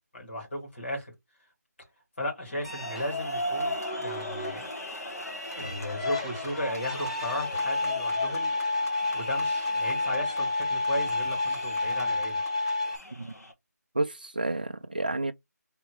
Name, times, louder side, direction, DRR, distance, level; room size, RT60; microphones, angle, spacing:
voice 1, 0.1-1.1 2.2-4.7 5.5-8.5 9.1-12.4, left 1 dB, 40° left, 2.5 m, -35 dB
sound 1, 2.4-13.5, left 2 dB, 60° left, 1.7 m, -38 dB
sound 2, 2.6-13.0, left 2 dB, 20° left, 0.6 m, -31 dB
voice 2, 13.9-15.3, right 2 dB, 30° right, 0.4 m, -30 dB
3.6 x 2.8 x 4.7 m
figure-of-eight pair, 180°, 9 cm